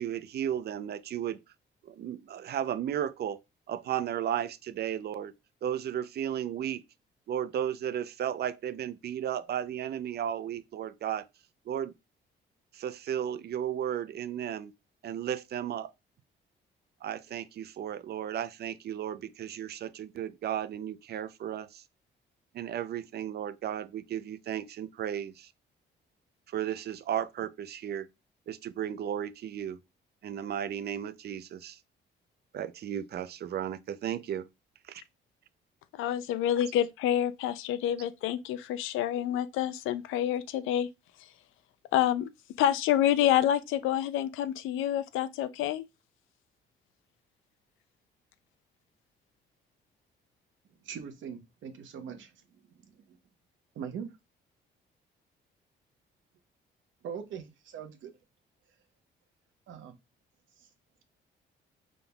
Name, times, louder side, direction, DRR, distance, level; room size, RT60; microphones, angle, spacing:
voice 1, 0.0-1.4 1.8-3.4 3.7-5.3 5.6-6.8 7.3-11.3 11.7-11.9 12.7-14.7 15.0-15.9 17.0-21.8 22.5-25.5 26.5-28.1 28.5-29.8 30.2-31.8 32.5-34.5 34.9-35.0, right 10 dB, 55° right, 0.5 m, -34 dB
voice 2, 35.9-40.9 41.9-42.3 42.6-45.8, left 11 dB, 90° left, 0.4 m, -28 dB
voice 3, 50.8-52.3 52.8-53.2 53.7-54.1 57.0-58.1 59.7-60.0 60.6-60.7, right 7 dB, 75° right, 0.9 m, -41 dB
5.2 x 3.7 x 2.3 m
cardioid pair, 90°, 20 cm